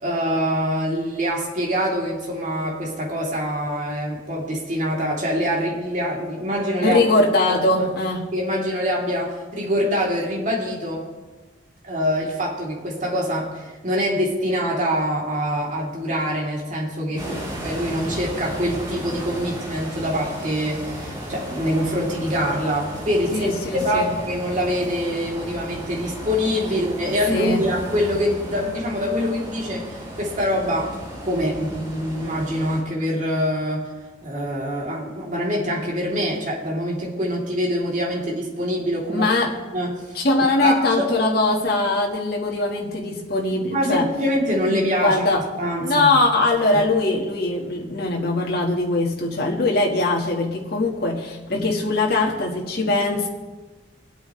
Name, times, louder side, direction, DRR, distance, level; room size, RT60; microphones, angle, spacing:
voice 1, 0.0-7.0 7.8-7.9 8.3-11.1 11.8-31.0 31.2-33.9 34.2-39.3 39.7-40.0 40.6-40.8 43.7-46.1 46.7-46.8, equal, 45° right, -3 dB, 3.1 m, -24 dB
voice 2, 6.8-8.2 17.2-17.4 23.3-24.2 27.3-27.7 39.1-39.5 40.1-44.1 44.7-45.4 45.8-53.3, left 2 dB, 60° left, -2 dB, 1.6 m, -21 dB
sound 1, 17.1-32.8, equal, 25° right, 4.1 m, -34 dB
24.0 x 8.5 x 3.2 m, 1.3 s
head